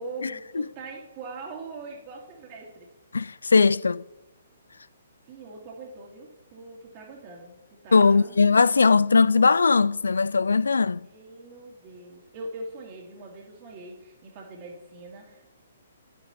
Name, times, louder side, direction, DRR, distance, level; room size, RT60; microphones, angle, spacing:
voice 1, 0.0-2.9 5.3-8.4 11.0-15.5, right 2 dB, 40° right, 2.2 m, -42 dB
voice 2, 3.1-4.0 7.9-11.0, left 4 dB, 85° left, 0.3 m, -19 dB
10.0 x 9.1 x 4.3 m
hypercardioid pair, 135°, 0 cm